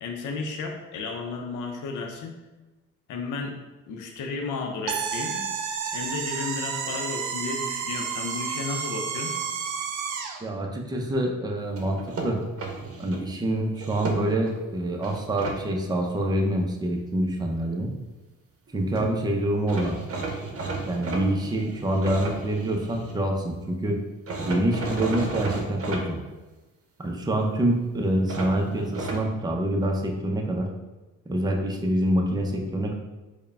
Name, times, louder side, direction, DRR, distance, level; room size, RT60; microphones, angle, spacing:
voice 1, 0.0-2.4 3.1-3.6 3.9-5.5 5.9-9.4, left 4 dB, 85° left, 3 dB, 0.6 m, -33 dB
sound 1, 4.9-10.4, right 6 dB, 85° right, 0.5 m, -31 dB
voice 2, 10.4-12.4 13.0-17.9 18.7-20.0 20.9-24.0 24.4-26.2 27.0-30.7 31.3-32.9, right 1 dB, 15° right, 1 dB, 0.5 m, -26 dB
sound 2, 11.8-13.2 13.7-14.5 15.0-15.6 18.7-18.8 18.9-19.1 19.7-23.2 24.3-26.0 28.3-29.2, right 3 dB, 50° right, 0.7 m, -33 dB
4.6 x 2.2 x 3.3 m, 1.1 s
cardioid pair, 90°, 30 cm